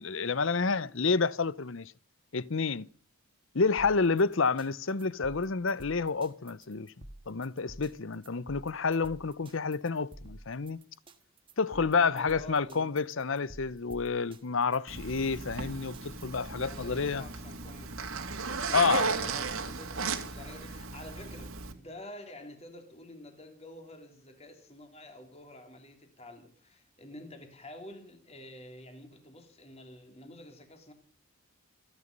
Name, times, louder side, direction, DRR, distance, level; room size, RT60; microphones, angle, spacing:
voice 1, 0.0-1.9 2.3-2.9 3.5-6.9 7.3-10.8 11.6-17.2 18.7-19.1, left 4 dB, 60° left, 0.7 m, -29 dB
voice 2, 0.6-0.9 11.7-12.9 15.1-15.3 16.5-17.9 18.4-30.9, left 1 dB, 30° left, 3.2 m, -49 dB
sound 1, 3.8-16.6, right 1 dB, 25° right, 1.5 m, -51 dB
Zipper (clothing), 14.9-21.7, right 4 dB, 70° right, 2.4 m, -35 dB
27.5 x 9.8 x 5.4 m
head